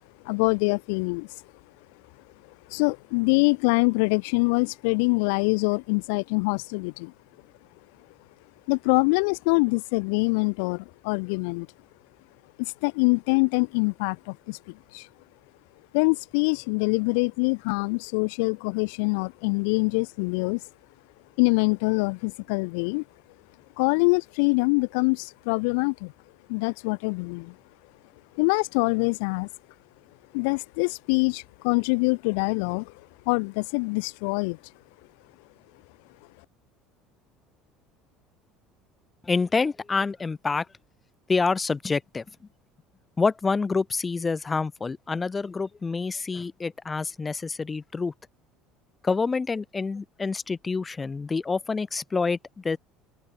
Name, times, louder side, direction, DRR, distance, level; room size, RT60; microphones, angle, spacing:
voice 1, 0.2-1.4 2.7-7.1 8.7-11.7 12.6-15.1 15.9-20.7 21.4-23.0 23.8-26.1 26.5-27.6 28.3-29.5 30.3-34.6, left 33 dB, 90° left, 2.6 m, -24 dB
voice 2, 39.2-40.7 41.3-42.2 43.2-48.1 49.0-52.8, left 4 dB, 15° left, 6.5 m, -27 dB
open air
cardioid pair, 140°, 0 cm